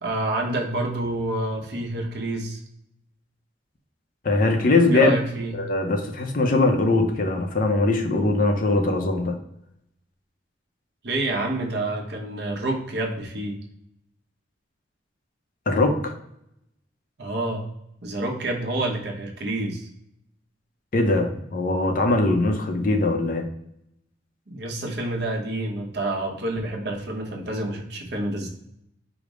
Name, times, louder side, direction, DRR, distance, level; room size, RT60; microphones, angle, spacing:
voice 1, 0.0-2.6 4.9-5.5 11.0-13.6 17.2-17.6 18.0-19.9 24.5-28.5, right 2 dB, 60° right, 0 dB, 0.9 m, -28 dB
voice 2, 4.2-5.2 5.5-9.4 15.7-16.1 20.9-23.5, left 2 dB, 45° left, 4 dB, 0.5 m, -21 dB
4.9 x 2.1 x 4.8 m, 0.77 s
head